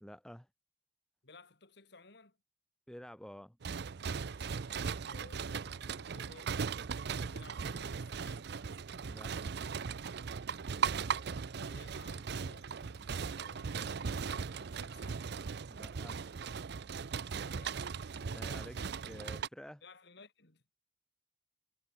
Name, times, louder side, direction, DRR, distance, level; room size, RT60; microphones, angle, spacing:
voice 1, 0.0-0.5 2.9-3.6 9.0-9.4 15.7-16.2 18.3-18.8 19.0-19.8, equal, 5° left, 0.7 m, -50 dB
voice 2, 1.2-2.4 4.6-6.6 7.1-8.5 11.2-15.2 17.4-17.9 18.5-19.1 19.3-19.4 19.8-20.6, left 3 dB, 65° left, 3.0 m, -58 dB
sound 1, 3.6-19.5, right 6 dB, 65° right, 0.5 m, -38 dB
head